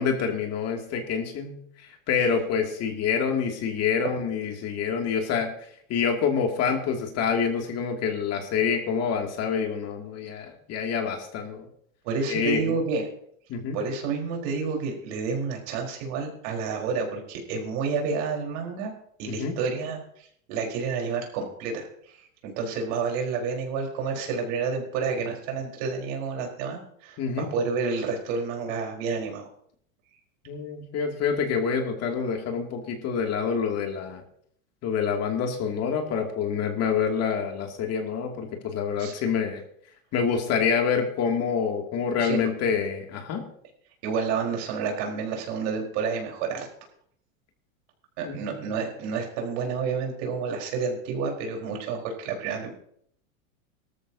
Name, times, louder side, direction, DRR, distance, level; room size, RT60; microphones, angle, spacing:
voice 1, 0.0-5.5 5.9-11.7 12.3-12.8 13.5-13.8 19.3-19.5 27.2-27.5 30.5-34.2 34.8-39.6 40.1-43.4 48.2-48.4, left 6 dB, 40° left, 3 dB, 2.6 m, -27 dB
voice 2, 12.0-13.0 13.7-18.9 19.2-29.5 39.0-39.1 42.2-42.5 44.0-46.7 48.2-52.8, right 5 dB, 60° right, 1 dB, 4.5 m, -30 dB
18.5 x 13.5 x 2.8 m, 0.66 s
supercardioid pair, 125°, 40 cm